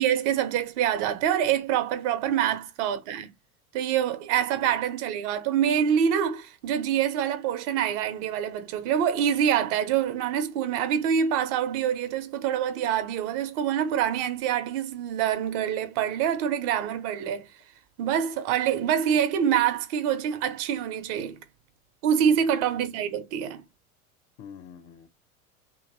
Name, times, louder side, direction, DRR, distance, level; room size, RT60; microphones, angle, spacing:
voice 1, 0.0-3.3 3.7-17.5 18.0-21.4 22.0-23.6, right 9 dB, 50° right, 0.9 m, -26 dB
voice 2, 4.3-4.7 22.0-22.3 24.4-25.1, left 8 dB, 40° left, 0.8 m, -47 dB
2.9 x 2.9 x 2.6 m
hypercardioid pair, 90°, 44 cm